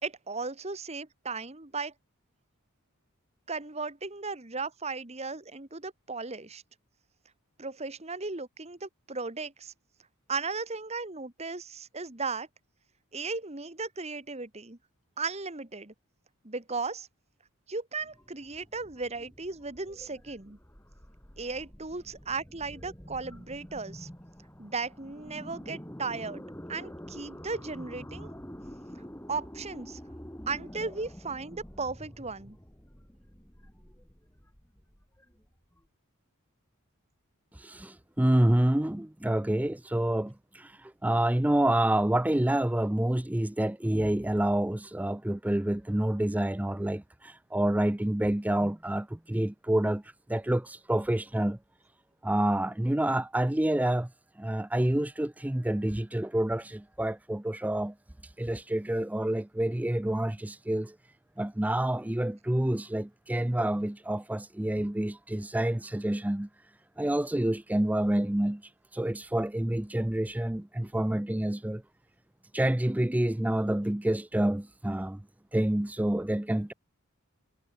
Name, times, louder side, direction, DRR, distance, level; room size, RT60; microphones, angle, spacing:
voice 1, 0.0-1.9 3.5-6.6 7.6-9.7 10.3-12.5 13.1-14.8 15.2-15.9 16.4-17.1 17.7-20.6 21.4-24.1 24.6-26.4 26.7-28.3 29.3-30.0 30.5-32.6, right 4 dB, 30° right, 1.6 m, -36 dB
sound 1, 18.0-35.8, equal, 10° left, 3.5 m, -47 dB
voice 2, 37.5-51.6 52.2-54.1 54.4-57.9 58.2-71.8 72.5-75.2 75.5-76.7, right 1 dB, 5° right, 0.4 m, -28 dB
head